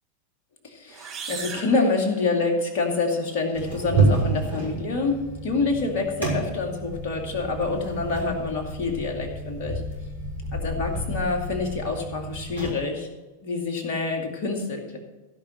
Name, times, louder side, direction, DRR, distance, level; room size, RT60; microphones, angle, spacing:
voice 1, 0.6-9.8 10.5-13.1 13.4-15.0, left 3 dB, 45° left, 2 dB, 2.3 m, -27 dB
sound 1, 0.9-2.7, right 6 dB, 30° right, 1.8 m, -38 dB
sound 2, 3.5-12.7, right 3 dB, 85° right, 4.7 m, -29 dB
16.0 x 5.6 x 6.3 m, 1.2 s
figure-of-eight pair, 90°, 0 cm